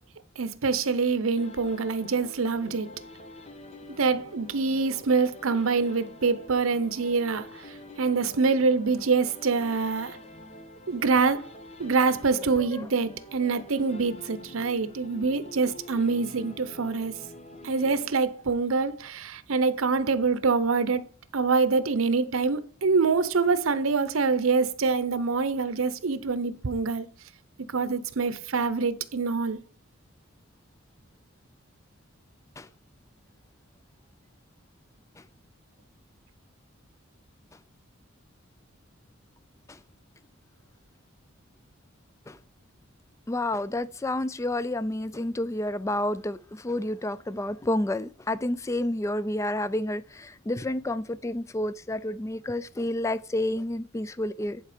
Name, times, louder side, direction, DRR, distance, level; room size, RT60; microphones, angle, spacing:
voice 1, 0.4-3.0 4.0-10.2 10.9-11.5 11.8-17.1 17.6-21.0 21.3-27.1 27.7-29.6, right 4 dB, 85° right, 0.8 m, -25 dB
sound 1, 1.4-18.6, left 1 dB, 30° left, 1.1 m, -46 dB
voice 2, 12.4-12.9 32.6-32.7 42.3-42.4 43.3-54.6, left 1 dB, 15° left, 0.3 m, -30 dB
10.5 x 4.5 x 5.0 m
head